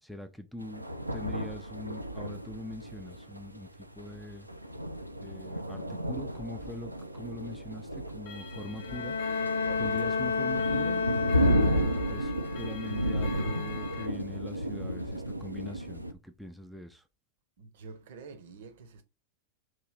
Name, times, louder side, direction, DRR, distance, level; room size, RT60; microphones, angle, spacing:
voice 1, 0.0-4.5 5.2-9.2 9.8-11.0 11.4-17.0, left 1 dB, ahead, 0.4 m, -43 dB
sound 1, 0.6-16.1, equal, 85° right, 0.3 m, -33 dB
Clock, 8.3-14.1, left 6 dB, 50° left, 0.8 m, -44 dB
Bowed string instrument, 8.8-12.2, left 5 dB, 75° left, 0.3 m, -31 dB
voice 2, 9.6-10.4 17.6-19.0, right 5 dB, 55° right, 0.7 m, -47 dB
3.0 x 2.7 x 3.8 m
figure-of-eight pair, 90°, 0 cm